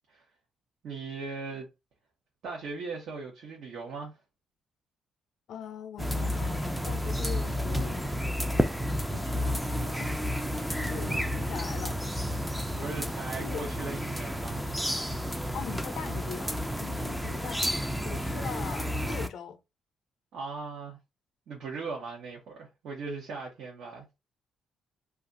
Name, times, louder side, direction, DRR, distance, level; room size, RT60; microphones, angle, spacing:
voice 1, 0.8-1.7 2.4-4.2 10.8-11.3 12.7-14.7 20.3-21.0 21.5-24.2, right 4 dB, 70° right, 1.0 m, -39 dB
voice 2, 5.5-8.2 9.1-10.2 10.5-12.0 12.8-12.9 13.4-13.7 15.5-19.6, left 7 dB, 70° left, 0.5 m, -41 dB
sound 1, 6.0-19.3, equal, ahead, 0.3 m, -31 dB
2.4 x 2.3 x 3.9 m
cardioid pair, 125°, 0 cm